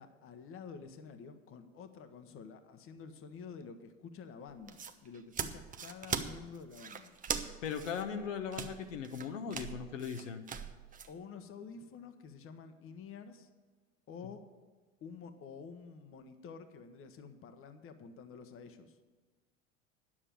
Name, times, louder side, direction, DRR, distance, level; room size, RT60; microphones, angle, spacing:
voice 1, 0.0-7.1 11.1-13.5 14.1-14.4 15.0-19.0, left 5 dB, 35° left, 9 dB, 1.1 m, -49 dB
sound 1, 4.5-11.1, right 6 dB, 20° right, 0.8 m, -41 dB
voice 2, 7.4-10.4, left 7 dB, 80° left, 6 dB, 1.1 m, -39 dB
9.8 x 7.4 x 9.0 m, 1.4 s
hypercardioid pair, 85°, 38 cm